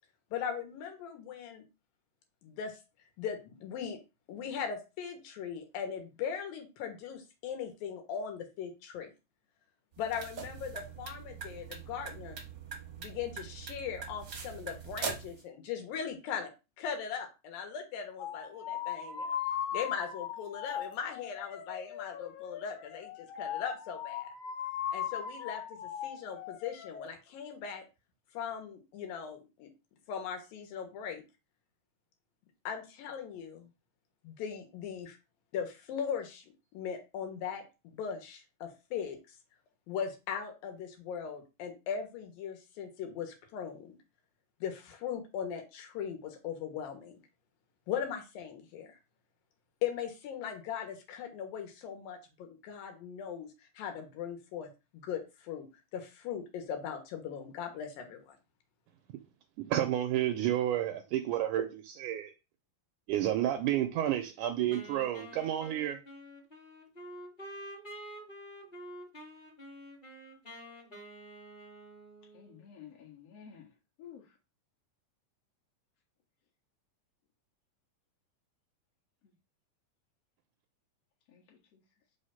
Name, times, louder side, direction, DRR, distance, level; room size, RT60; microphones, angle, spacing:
voice 1, 0.3-1.6 2.4-2.8 3.2-4.0 4.3-9.1 10.0-12.4 13.0-16.5 16.8-19.4 19.7-24.3 24.9-27.8 28.3-29.7 30.1-31.2 32.6-33.7 34.2-35.2 35.5-39.4 39.9-44.0 44.6-47.1 47.9-48.9 49.8-53.5 53.7-55.7 55.9-58.4, left 7 dB, 90° left, 3.0 m, -39 dB
sound 1, 9.9-15.4, right 6 dB, 60° right, 1.1 m, -42 dB
sound 2, 18.2-27.1, left 9 dB, 75° left, 2.0 m, -39 dB
voice 2, 59.6-62.3 63.1-66.0, right 12 dB, 80° right, 1.9 m, -30 dB
Wind instrument woodwind instrument, 64.7-72.6, right 1 dB, 25° left, 1.1 m, -48 dB
voice 3, 72.3-73.7 74.0-74.2 81.3-81.8, left 8 dB, 50° left, 2.4 m, -52 dB
5.6 x 3.3 x 5.6 m
omnidirectional pair, 4.0 m